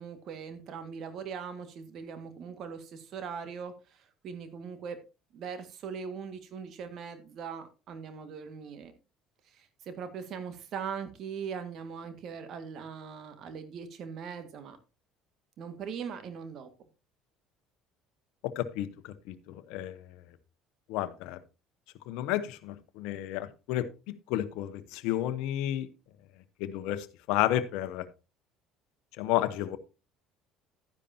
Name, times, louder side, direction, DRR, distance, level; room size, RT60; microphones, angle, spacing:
voice 1, 0.0-5.0 5.3-8.9 9.5-14.8 15.6-16.7, right 6 dB, 55° right, 1.8 m, -40 dB
voice 2, 18.6-20.0 20.9-21.4 22.1-23.9 24.3-25.9 26.6-28.1 29.2-29.8, left 13 dB, 70° left, 0.9 m, -31 dB
12.0 x 10.0 x 2.8 m
hypercardioid pair, 70°, 0 cm